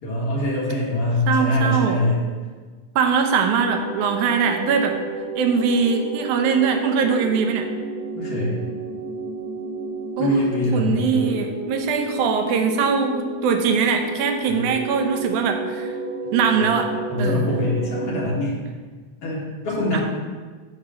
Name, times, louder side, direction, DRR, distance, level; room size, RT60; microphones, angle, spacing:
voice 1, 0.0-2.2 8.2-8.6 10.2-11.3 14.5-14.6 17.1-18.6 19.2-20.0, left 1 dB, 50° left, -5 dB, 2.5 m, -23 dB
voice 2, 1.3-2.0 3.0-5.0 5.4-7.7 10.2-10.3 10.7-15.9 16.3-16.9 17.2-17.5 19.9-20.0, right 6 dB, 80° right, 5 dB, 2.2 m, -21 dB
sound 1, 3.3-18.3, right 2 dB, 55° right, 1.2 m, -31 dB
10.5 x 3.7 x 6.3 m, 1.4 s
omnidirectional pair, 3.5 m